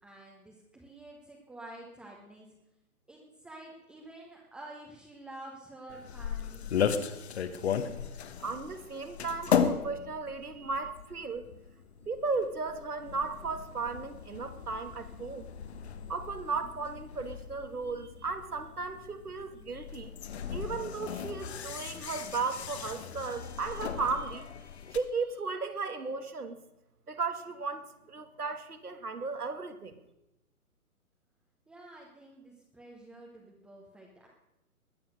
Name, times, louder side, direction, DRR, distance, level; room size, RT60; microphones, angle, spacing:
voice 1, 0.0-2.5 3.1-7.1 31.7-34.3, right 1 dB, ahead, -2 dB, 1.0 m, -49 dB
sound 1, 5.9-25.0, left 7 dB, 45° left, 1.4 m, -36 dB
voice 2, 8.4-11.4 12.1-15.5 16.1-20.1 20.5-24.4 24.9-26.6 27.1-29.9, right 4 dB, 80° right, 9 dB, 2.0 m, -35 dB
21.0 x 7.6 x 6.5 m, 0.92 s
figure-of-eight pair, 135°, 45 cm